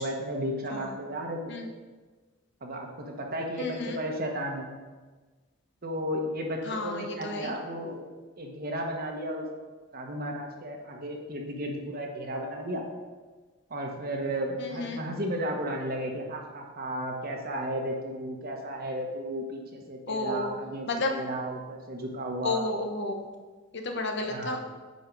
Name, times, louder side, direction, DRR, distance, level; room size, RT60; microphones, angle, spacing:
voice 1, 0.0-1.5 2.6-4.7 5.8-8.0 8.4-9.5 9.9-12.8 13.7-22.6 24.3-24.6, right 1 dB, 50° right, 1 dB, 1.2 m, -34 dB
voice 2, 3.6-4.0 6.6-7.5 14.6-15.0 20.1-20.6 20.9-21.1 22.4-23.3 23.7-24.6, left 2 dB, 60° left, 3 dB, 1.1 m, -32 dB
9.3 x 4.6 x 5.3 m, 1.3 s
head